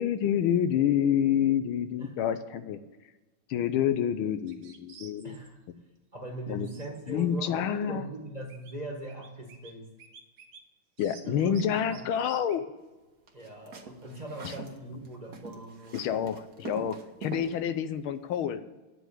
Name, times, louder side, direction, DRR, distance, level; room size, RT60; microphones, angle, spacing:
voice 1, 0.0-2.8 3.5-5.4 6.5-6.7 7.1-8.1 11.0-12.7 14.4-14.5 15.9-18.6, left 9 dB, 80° left, 11 dB, 1.5 m, -28 dB
sound 1, 4.5-5.5 6.6-7.5 8.1-8.2 8.5-8.8 9.1-9.7 10.0-10.6 11.0-12.6, right 5 dB, 90° right, 2.1 m, -52 dB
voice 2, 5.2-5.6 6.1-9.9 11.2-12.0 13.3-16.0, right 1 dB, 20° right, 1 dB, 1.6 m, -41 dB
sound 2, 13.3-14.8 15.0-17.5, right 5 dB, 50° right, 1.6 m, -43 dB
9.5 x 7.9 x 9.2 m, 1.2 s
omnidirectional pair, 2.3 m